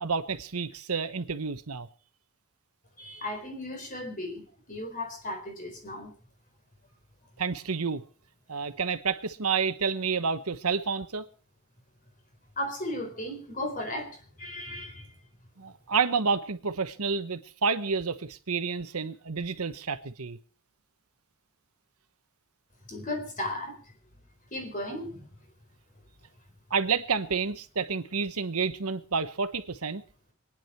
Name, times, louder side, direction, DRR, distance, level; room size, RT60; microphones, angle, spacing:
voice 1, 0.0-1.9 7.4-8.0 8.5-11.2 15.6-20.4 26.7-30.0, right 5 dB, 85° right, 1.2 m, -29 dB
voice 2, 3.0-4.4 4.7-6.1 12.6-15.1 22.9-23.8 24.5-25.3, left 1 dB, 35° left, 4.3 m, -35 dB
25.5 x 10.0 x 4.5 m
head